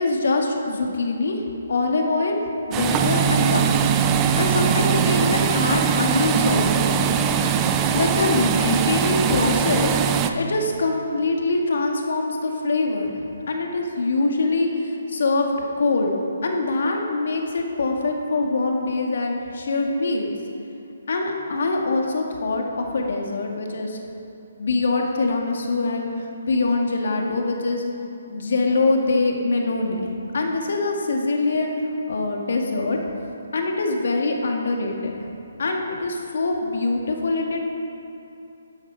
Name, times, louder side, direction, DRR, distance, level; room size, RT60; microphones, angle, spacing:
voice 1, 0.0-1.4 1.7-2.4 2.7-3.9 4.4-6.9 7.9-13.1 13.5-15.5 15.8-16.2 16.4-20.3 21.1-24.0 24.6-26.1 26.4-27.8 28.3-33.0 33.5-35.3 35.6-37.6, left 3 dB, 65° left, 1 dB, 2.0 m, -23 dB
sound 1, 2.7-10.3, right 8 dB, 15° right, 0.5 m, -21 dB
13.0 x 8.2 x 5.7 m, 2.7 s
hypercardioid pair, 160°, 0 cm